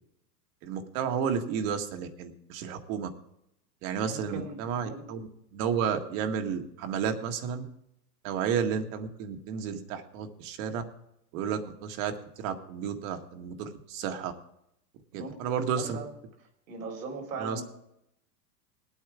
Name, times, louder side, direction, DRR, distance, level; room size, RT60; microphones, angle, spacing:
voice 1, 0.6-3.1 3.8-7.7 8.2-10.8 11.3-12.1 12.4-14.3 15.1-16.0 17.4-17.6, right 7 dB, 55° right, 6 dB, 1.8 m, -32 dB
voice 2, 3.9-4.6 4.8-5.0 15.1-16.1 16.7-17.6, right 4 dB, 85° right, 1 dB, 4.1 m, -39 dB
20.0 x 8.9 x 3.6 m, 0.79 s
hypercardioid pair, 130°, 49 cm